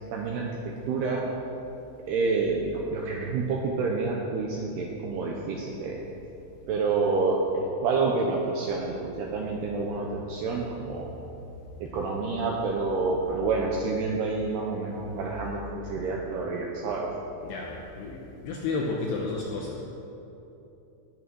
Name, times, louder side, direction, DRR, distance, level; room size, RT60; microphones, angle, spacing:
voice 1, 0.1-1.2 2.1-6.0 6.7-11.1 11.8-17.1, right 4 dB, 80° right, -1 dB, 2.4 m, -28 dB
voice 2, 17.4-19.8, left 3 dB, 75° left, -1 dB, 2.4 m, -32 dB
18.0 x 6.3 x 6.2 m, 2.9 s
omnidirectional pair, 5.8 m